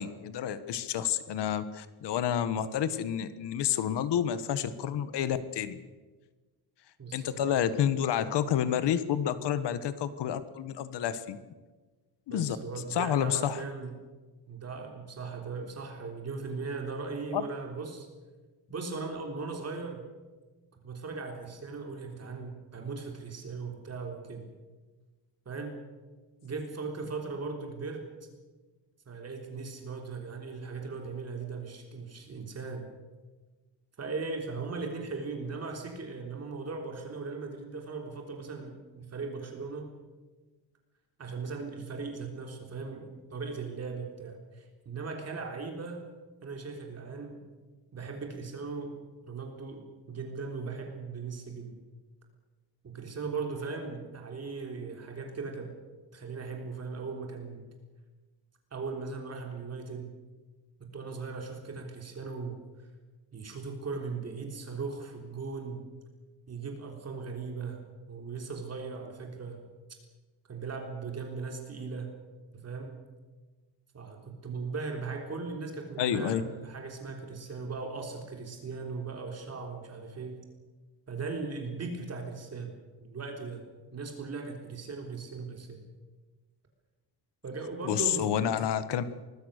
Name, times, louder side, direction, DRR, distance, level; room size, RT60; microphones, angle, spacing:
voice 1, 0.0-5.8 7.1-11.4 12.3-12.6 12.9-13.6 17.3-17.4 76.0-76.4 87.9-89.0, left 9 dB, 85° left, 13 dB, 1.4 m, -29 dB
voice 2, 7.0-7.4 12.3-14.0 14.5-18.1 18.7-20.1 20.8-24.4 25.5-25.8 26.4-28.1 29.1-32.9 34.0-39.9 41.2-46.0 46.4-47.4 47.9-48.9 49.3-51.8 52.8-55.7 56.1-57.6 58.7-60.1 60.9-62.6 63.3-65.9 66.5-67.8 68.1-69.6 70.5-72.1 72.5-73.0 73.9-80.4 81.1-82.7 83.0-85.8 87.4-88.5, right 4 dB, 40° right, 2 dB, 3.7 m, -38 dB
24.5 x 20.0 x 6.7 m, 1.3 s
cardioid pair, 155°, 40 cm